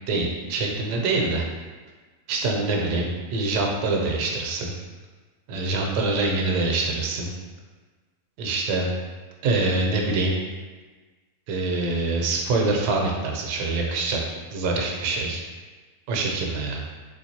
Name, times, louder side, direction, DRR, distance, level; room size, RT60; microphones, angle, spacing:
voice 1, 0.1-1.4 2.3-4.7 5.5-7.3 8.4-8.9 9.4-10.3 11.5-14.2 14.5-15.4 16.1-16.8, right 3 dB, 75° right, 0 dB, 1.1 m, -25 dB
3.4 x 2.9 x 2.7 m, 1.3 s
omnidirectional pair, 1.9 m